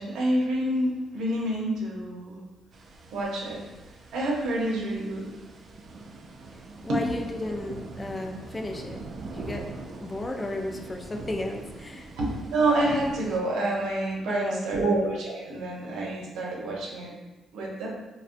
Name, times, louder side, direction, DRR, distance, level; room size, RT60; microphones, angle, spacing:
voice 1, 0.0-2.4 3.1-3.6 4.1-5.3 6.9-7.0 12.2-17.1 17.5-17.9, right 1 dB, 80° right, -3 dB, 0.8 m, -27 dB
sound 1, 2.7-13.4, right 3 dB, 50° right, 0.3 m, -42 dB
voice 2, 6.8-9.0 9.3-9.7 10.0-12.1 14.2-15.0, left 2 dB, 20° left, 2 dB, 0.4 m, -34 dB
3.7 x 2.2 x 2.5 m, 1.1 s
cardioid pair, 90°, 0 cm